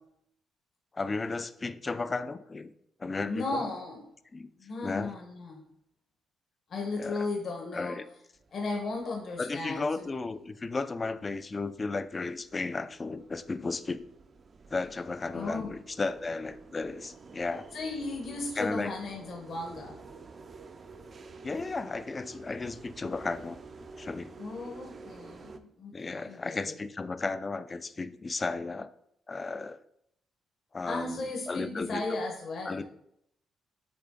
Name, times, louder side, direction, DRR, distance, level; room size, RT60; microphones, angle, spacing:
voice 1, 0.9-2.7 3.0-3.6 4.3-4.5 4.8-5.1 7.0-7.3 7.7-8.1 9.4-14.0 14.7-17.7 18.6-19.0 21.4-23.6 24.0-24.3 25.9-28.9 29.3-29.8 30.7-32.2 32.6-32.8, left 3 dB, 30° left, 13 dB, 0.4 m, -34 dB
voice 2, 3.3-4.0 4.6-5.6 6.7-8.0 8.5-10.1 15.3-15.7 17.7-20.0 24.4-26.8 30.9-32.8, left 3 dB, 55° left, 0 dB, 1.2 m, -35 dB
sound 1, 8.4-25.6, right 3 dB, 40° right, 0.5 m, -50 dB
6.8 x 3.8 x 3.8 m, 0.74 s
cardioid pair, 90°, 0 cm